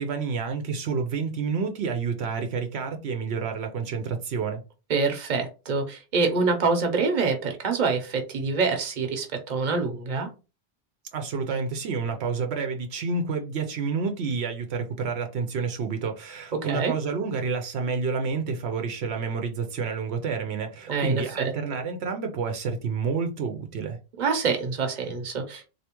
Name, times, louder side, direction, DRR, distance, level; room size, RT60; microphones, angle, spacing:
voice 1, 0.0-4.6 11.1-24.0, right 5 dB, 85° right, 0.9 m, -29 dB
voice 2, 4.9-10.3 16.6-16.9 20.9-21.5 24.2-25.7, right 4 dB, 45° right, 0.9 m, -26 dB
3.4 x 2.8 x 2.9 m
omnidirectional pair, 1.1 m